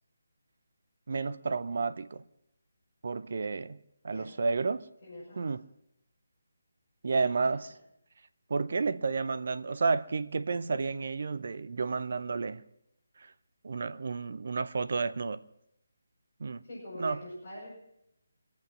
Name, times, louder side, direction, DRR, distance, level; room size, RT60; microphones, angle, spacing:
voice 1, 1.1-2.2 3.0-4.9 5.4-5.6 7.0-7.7 8.5-12.6 13.2-13.3 13.6-15.4 16.4-16.6 17.0-17.2, right 4 dB, 50° right, 0.6 m, -31 dB
voice 2, 4.1-4.4 5.0-5.4 7.2-7.7 16.6-17.7, equal, 40° left, 6.7 m, -44 dB
24.0 x 8.4 x 6.1 m
figure-of-eight pair, 150°, 0 cm